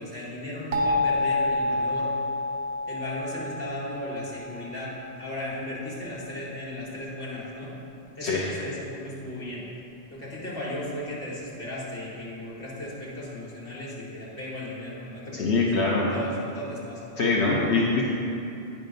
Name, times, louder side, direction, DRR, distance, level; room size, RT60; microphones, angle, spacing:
voice 1, 0.0-2.1 2.9-7.7 8.2-9.7 10.1-17.1, left 1 dB, 60° left, -6 dB, 2.2 m, -36 dB
sound 1, 0.7-5.4, left 2 dB, 70° right, 1.3 m, -29 dB
voice 2, 15.3-16.1 17.2-18.0, left 3 dB, 85° left, -4 dB, 1.2 m, -23 dB
9.2 x 6.0 x 5.3 m, 2.7 s
omnidirectional pair, 1.1 m